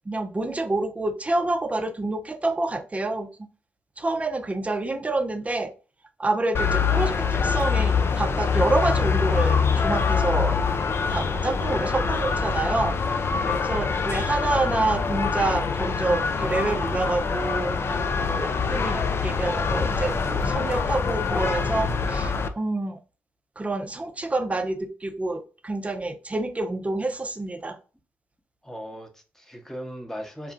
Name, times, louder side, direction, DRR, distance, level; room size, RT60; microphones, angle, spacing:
voice 1, 0.1-3.3 4.0-5.7 6.2-10.6 11.1-13.0 13.7-17.8 18.3-23.0 23.6-27.8, right 2 dB, 25° right, 0.6 m, -27 dB
sound 1, 6.5-22.5, left 5 dB, 45° left, 0.4 m, -24 dB
voice 2, 13.4-13.7 28.6-30.5, equal, 5° left, 0.9 m, -38 dB
3.0 x 2.4 x 2.4 m
hypercardioid pair, 40°, 6 cm